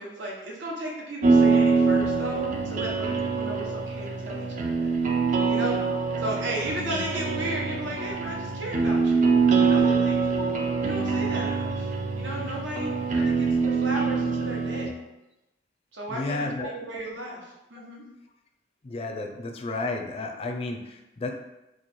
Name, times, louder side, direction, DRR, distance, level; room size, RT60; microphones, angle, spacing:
voice 1, 0.0-4.9 5.5-5.8 6.2-9.3 9.6-10.2 10.8-14.9 15.9-18.0, right 1 dB, 80° right, -1 dB, 0.9 m, -35 dB
sound 1, 1.2-14.9, right 4 dB, 45° right, 0.5 m, -24 dB
voice 2, 16.1-16.7 17.8-17.9 18.8-21.3, left 2 dB, 35° left, 3 dB, 0.4 m, -32 dB
3.1 x 2.4 x 4.2 m, 0.94 s
head